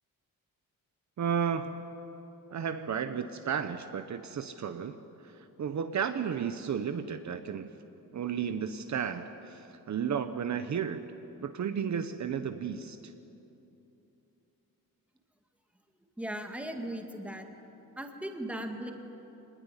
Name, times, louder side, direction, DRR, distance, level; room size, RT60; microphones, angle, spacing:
voice 1, 1.2-1.9 2.5-5.0 5.3-7.7 8.1-11.0 11.4-13.0, right 7 dB, 50° right, 9 dB, 0.9 m, -33 dB
voice 2, 16.2-17.5 18.0-18.9, right 1 dB, 5° right, 3 dB, 1.8 m, -37 dB
25.0 x 19.5 x 9.9 m, 2.9 s
wide cardioid pair, 180°, 35 cm